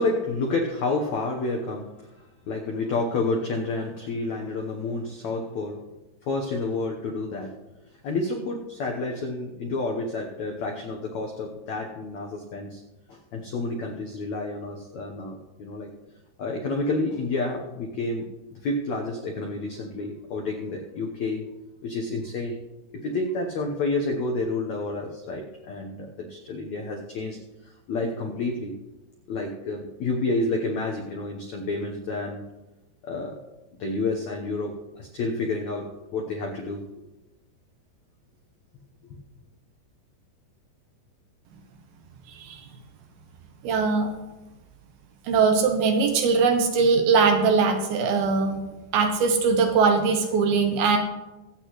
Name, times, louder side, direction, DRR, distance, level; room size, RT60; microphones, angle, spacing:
voice 1, 0.0-2.1 2.5-5.9 6.3-7.6 8.0-12.8 13.1-15.9 16.4-18.3 18.6-21.5 21.8-22.6 22.9-27.4 27.6-28.7 29.3-32.4 33.0-33.4 33.8-36.8 39.0-39.2, left 2 dB, 85° left, 1 dB, 1.6 m, -29 dB
voice 2, 42.3-42.6 43.6-44.1 45.3-48.6 48.9-51.0, right 5 dB, 75° right, 5 dB, 2.5 m, -21 dB
23.0 x 8.3 x 3.1 m, 1.1 s
omnidirectional pair, 4.8 m